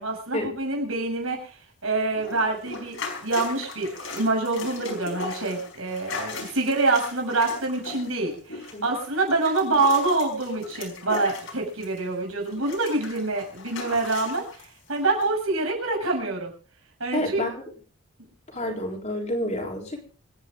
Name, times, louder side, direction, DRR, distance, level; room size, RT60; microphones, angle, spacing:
voice 1, 0.0-1.5 1.8-3.0 3.2-16.5 17.0-17.4 18.6-18.7, right 2 dB, 70° right, 1 dB, 7.1 m, -26 dB
sound 1, 2.1-12.1 12.4-14.7 15.2-15.3, left 3 dB, 70° left, 4.9 m, -38 dB
voice 2, 17.1-17.6 18.5-20.0, left 1 dB, 30° left, 1 dB, 3.7 m, -29 dB
26.5 x 9.9 x 3.7 m, 0.39 s
head